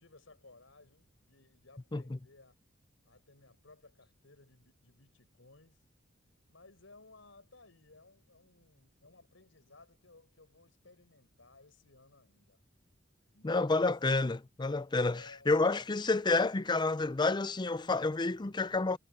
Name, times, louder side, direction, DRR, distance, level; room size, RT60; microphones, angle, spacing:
voice 1, 0.0-2.5 3.0-5.8 6.5-12.6 13.3-13.9 15.1-15.5, left 3 dB, 85° left, 4.8 m, -60 dB
voice 2, 13.4-19.0, left 3 dB, 20° left, 0.5 m, -29 dB
head